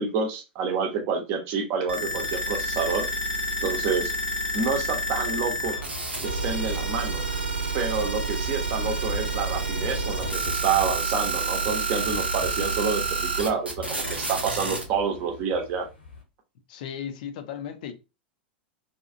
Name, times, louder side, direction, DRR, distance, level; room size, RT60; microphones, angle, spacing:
voice 1, 0.0-3.1 3.6-4.1 4.5-5.8 6.2-7.2 7.7-15.9, right 5 dB, 40° right, 0.7 m, -28 dB
sound 1, 1.9-14.8, right 2 dB, 85° right, 0.6 m, -29 dB
sound 2, 5.6-16.2, left 4 dB, 75° left, 1.1 m, -42 dB
voice 2, 16.7-17.9, left 8 dB, 55° left, 0.5 m, -35 dB
2.7 x 2.4 x 2.5 m
figure-of-eight pair, 90°, 6 cm